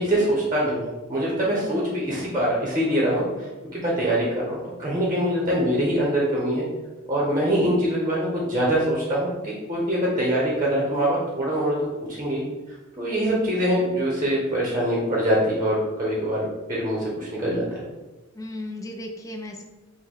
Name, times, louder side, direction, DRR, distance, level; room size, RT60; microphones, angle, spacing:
voice 1, 0.0-6.6 7.1-17.8, equal, 20° right, -5 dB, 0.9 m, -24 dB
voice 2, 13.1-13.4 18.3-19.6, left 1 dB, 15° left, 2 dB, 0.4 m, -36 dB
5.7 x 2.2 x 3.6 m, 1.1 s
head